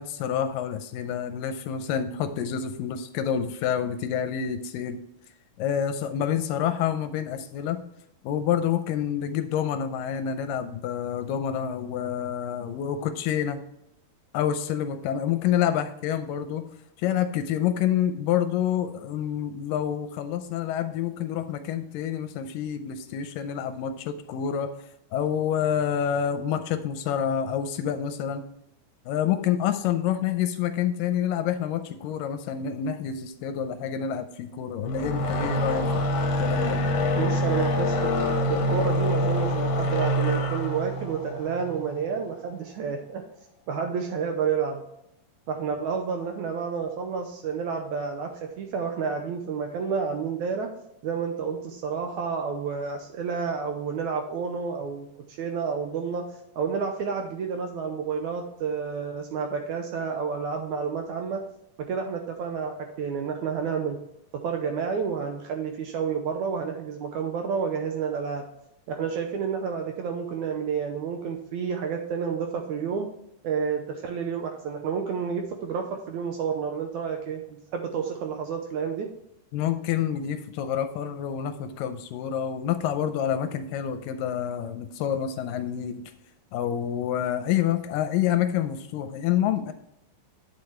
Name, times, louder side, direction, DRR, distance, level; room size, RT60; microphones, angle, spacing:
voice 1, 0.0-5.0 5.6-7.8 8.2-13.6 14.3-16.6 17.0-24.7 25.1-28.4 29.1-36.1 36.4-36.8 79.5-86.1 86.5-89.7, left 9 dB, 80° left, 9 dB, 2.2 m, -28 dB
sound 1, 34.8-42.2, left 1 dB, 65° left, 1.7 m, -26 dB
voice 2, 37.2-38.2 38.5-43.2 43.7-44.8 45.5-48.3 48.6-50.7 51.0-55.1 55.4-56.2 56.6-61.4 61.9-64.0 64.4-68.4 68.9-73.1 73.4-79.1, right 6 dB, 75° right, 4 dB, 1.8 m, -30 dB
9.3 x 6.7 x 3.2 m, 0.81 s
omnidirectional pair, 4.1 m